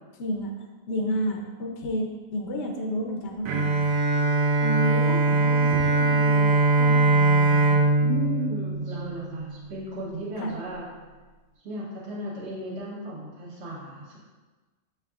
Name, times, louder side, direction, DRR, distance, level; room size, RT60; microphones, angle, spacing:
voice 1, 0.2-3.6 4.6-7.8 10.4-10.5, equal, 65° left, 0 dB, 0.8 m, -31 dB
Bowed string instrument, 3.5-9.6, right 2 dB, 80° right, 1.0 m, -22 dB
voice 2, 8.0-10.9 11.6-14.2, equal, 55° right, -7 dB, 1.1 m, -35 dB
6.5 x 3.4 x 2.4 m, 1.3 s
omnidirectional pair, 1.4 m